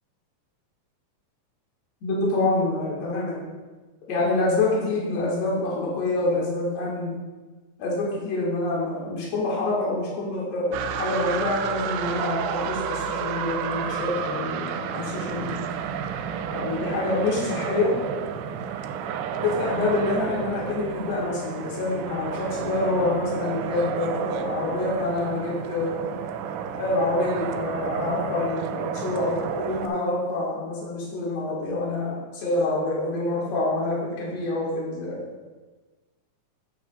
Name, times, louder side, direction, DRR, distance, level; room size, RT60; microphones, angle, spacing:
voice 1, 2.0-3.4 4.1-7.1 7.8-15.6 16.5-17.9 19.4-26.1 26.7-35.2, left 2 dB, 55° left, -6 dB, 3.0 m, -26 dB
sound 1, 10.7-29.9, right 8 dB, 80° right, 1.9 m, -31 dB
9.3 x 7.8 x 2.5 m, 1.3 s
omnidirectional pair, 3.9 m